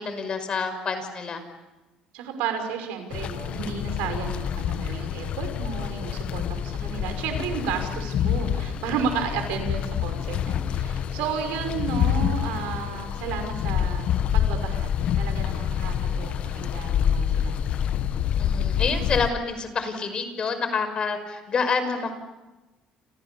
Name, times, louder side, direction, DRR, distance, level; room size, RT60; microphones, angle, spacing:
voice 1, 0.0-1.4 6.2-6.5 18.4-22.1, left 5 dB, 40° left, 9 dB, 5.6 m, -28 dB
voice 2, 2.1-14.0 14.3-17.8, right 6 dB, 85° right, 6 dB, 5.7 m, -32 dB
sound 1, 3.1-19.3, left 9 dB, 55° left, 1.2 m, -27 dB
29.0 x 28.5 x 7.1 m, 1.1 s
cardioid pair, 100°, 2 cm